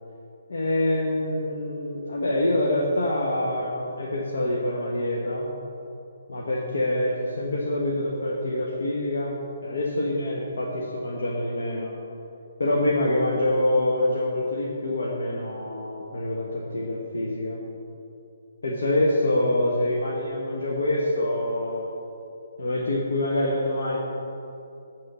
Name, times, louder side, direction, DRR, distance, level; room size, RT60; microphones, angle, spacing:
voice 1, 0.5-5.5 6.3-11.9 12.6-17.6 18.6-21.9 22.6-24.0, left 1 dB, 80° left, -4 dB, 1.1 m, -26 dB
9.9 x 3.7 x 6.7 m, 2.8 s
hypercardioid pair, 155°, 0 cm